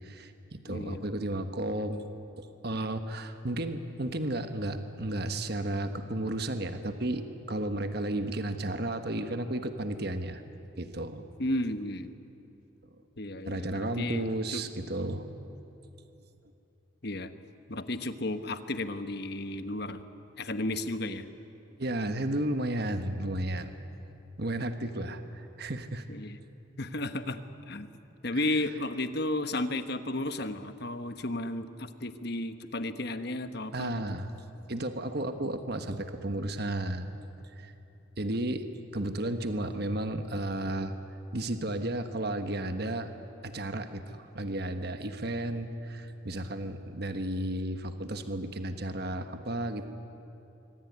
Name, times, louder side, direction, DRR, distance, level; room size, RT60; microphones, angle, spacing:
voice 1, 0.0-2.0 2.4-10.4 10.8-11.2 13.4-15.3 21.8-23.7 24.4-26.0 28.3-28.4 33.7-34.3 34.7-37.2 37.6-37.7 38.2-38.7 38.9-40.9 41.3-43.1 43.4-49.9, right 1 dB, 50° right, 8 dB, 1.3 m, -33 dB
voice 2, 0.7-1.1 11.4-12.1 13.2-14.6 17.0-17.3 17.7-20.0 20.4-21.3 24.8-24.9 26.1-26.4 26.8-27.9 28.2-34.0, left 1 dB, 50° left, 10 dB, 1.2 m, -33 dB
24.5 x 24.5 x 9.5 m, 2.8 s
head